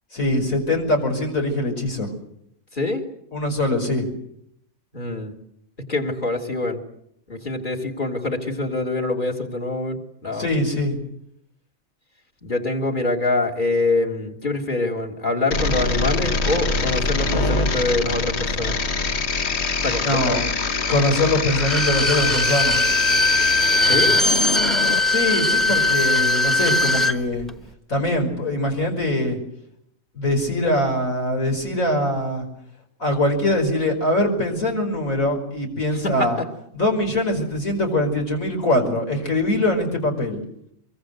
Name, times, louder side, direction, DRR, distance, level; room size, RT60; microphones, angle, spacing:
voice 1, 0.1-2.1 3.3-4.1 10.3-11.0 20.0-20.4 20.9-22.8 25.1-27.5 27.9-29.4 30.1-32.5 33.0-36.4 36.7-40.4, left 1 dB, 75° left, 3 dB, 5.8 m, -22 dB
voice 2, 2.7-3.0 4.9-5.3 5.9-6.8 7.3-10.5 12.4-18.8 19.8-20.4 23.9-24.2 36.0-36.5, left 2 dB, 35° left, 7 dB, 3.2 m, -25 dB
sound 1, 15.5-25.0, left 3 dB, 55° left, 1.5 m, -24 dB
Bowed string instrument, 21.5-27.2 27.5-27.6, left 2 dB, ahead, 1.0 m, -20 dB
24.0 x 23.5 x 8.1 m, 0.72 s
omnidirectional pair, 1.4 m